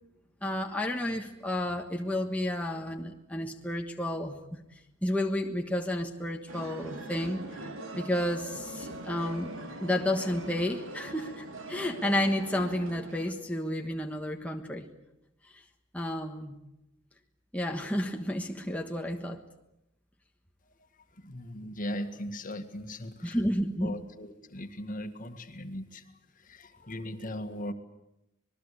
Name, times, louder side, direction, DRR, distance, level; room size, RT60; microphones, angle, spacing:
voice 1, 0.4-4.6 5.0-7.4 8.0-14.9 15.5-15.6 15.9-16.6 17.5-19.4 23.2-23.9, left 1 dB, 5° left, 2 dB, 1.4 m, -31 dB
sound 1, 6.5-13.3, right 1 dB, 75° right, 3.1 m, -42 dB
voice 2, 21.2-23.4 23.8-26.0 26.4-27.7, left 1 dB, 40° left, 7 dB, 1.9 m, -38 dB
26.5 x 21.0 x 8.4 m, 0.86 s
head